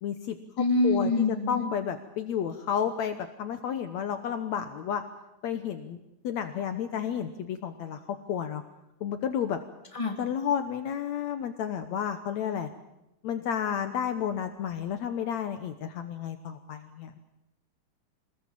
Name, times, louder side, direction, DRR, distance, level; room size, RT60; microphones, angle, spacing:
voice 1, 0.0-5.0 5.4-6.0 6.2-8.6 9.0-9.6 10.2-12.7 13.2-17.2, left 8 dB, 65° left, 8 dB, 2.2 m, -31 dB
voice 2, 0.6-1.6 9.9-10.1, left 2 dB, 10° left, 2 dB, 2.7 m, -25 dB
25.0 x 20.0 x 7.6 m, 0.88 s
omnidirectional pair, 3.6 m